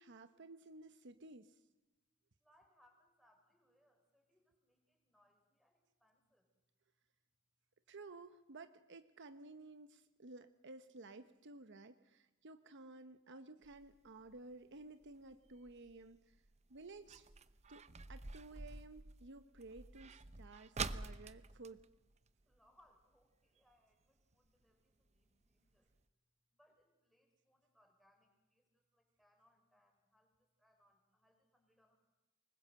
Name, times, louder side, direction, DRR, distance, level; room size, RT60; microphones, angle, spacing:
voice 1, 0.0-1.6 7.9-16.4 16.7-17.3 17.7-21.8, right 2 dB, 60° right, 10 dB, 1.0 m, -55 dB
voice 2, 2.4-6.5 22.5-25.9 26.5-30.3 30.6-31.9, equal, ahead, 2 dB, 4.8 m, -74 dB
sound 1, 13.6-22.9 23.2-23.3 23.6-23.9 24.4-24.5 25.1-25.2 25.5-25.6 25.9-26.0, right 4 dB, 30° right, 0.8 m, -49 dB
24.5 x 21.0 x 7.7 m, 1.1 s
head